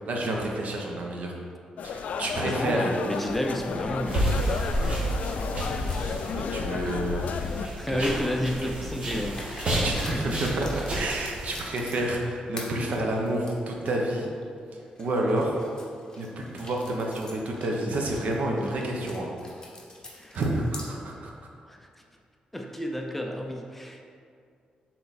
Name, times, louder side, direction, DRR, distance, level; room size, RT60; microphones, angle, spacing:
voice 1, 0.1-1.3 1.8-2.9 6.3-7.3 7.9-8.1 8.8-8.9 9.2-14.3 15.0-15.6 16.2-19.3 20.3-21.3, right 1 dB, 65° right, 0 dB, 1.0 m, -29 dB
sound 1, 1.8-7.7, left 5 dB, 65° left, 0.3 m, -32 dB
voice 2, 2.4-4.3 7.7-10.3 20.2-20.4 21.2-21.3 21.7-22.0 22.5-24.0, equal, 5° left, 2 dB, 0.5 m, -31 dB
sound 2, 3.6-7.8 8.4-12.2 12.5-14.0 14.4-14.5 15.0-20.9, left 2 dB, 25° left, 1.1 m, -46 dB
sound 3, 4.1-11.6, right 1 dB, 45° right, 1.3 m, -31 dB
6.2 x 4.2 x 4.2 m, 2.3 s
cardioid pair, 115°, 3 cm